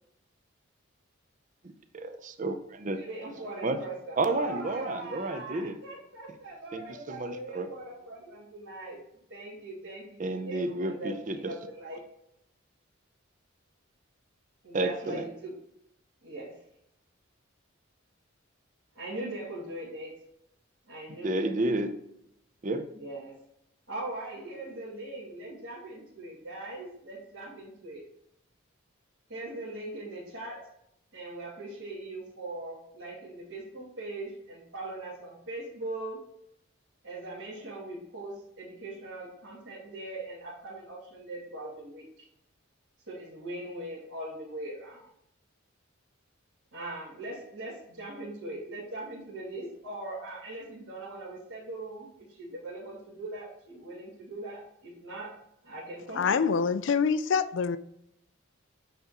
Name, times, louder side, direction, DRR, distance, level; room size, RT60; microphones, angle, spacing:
voice 1, 1.9-3.0 3.6-3.8 4.2-5.8 6.7-7.7 10.2-11.5 11.9-12.0 14.7-15.2 21.1-21.9 22.6-22.9, right 2 dB, 40° right, 0.5 m, -31 dB
voice 2, 2.9-9.0 9.3-12.0 14.6-15.5 16.2-16.5 19.0-20.1 20.9-21.8 22.9-23.3 23.9-28.0 29.3-30.7 31.1-36.2 37.0-42.3 43.1-45.1 46.7-52.1 52.4-55.4 55.6-56.5, right 2 dB, 70° right, 2.5 m, -40 dB
voice 3, 56.1-57.8, left 6 dB, 60° left, 0.4 m, -25 dB
9.1 x 3.6 x 3.0 m
head